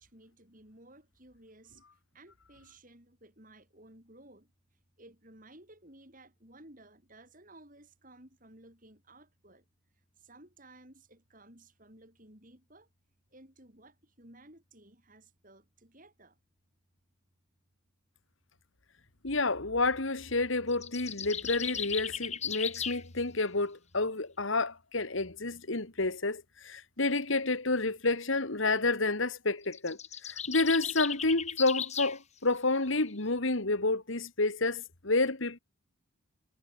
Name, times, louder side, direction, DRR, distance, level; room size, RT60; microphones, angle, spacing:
voice 1, 0.0-1.8 2.1-4.5 5.0-9.6 10.2-12.9 13.3-16.4, right 1 dB, 40° right, 7.5 m, -56 dB
voice 2, 19.2-30.0 30.2-35.6, left 3 dB, 70° left, 2.2 m, -29 dB
sound 1, 20.7-23.0 29.6-32.2, left 8 dB, 30° left, 3.0 m, -36 dB
head